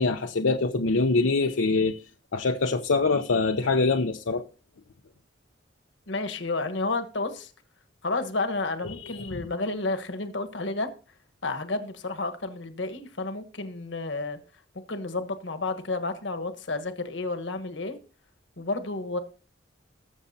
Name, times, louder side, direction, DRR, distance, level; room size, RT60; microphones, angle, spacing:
voice 1, 0.0-2.0 2.3-4.5 9.0-9.3, left 3 dB, 80° left, 0.7 m, -24 dB
voice 2, 6.1-7.5 8.0-10.9 11.4-14.4 14.9-18.0 18.6-19.2, left 3 dB, 65° left, 1.3 m, -31 dB
20.0 x 7.1 x 2.8 m
head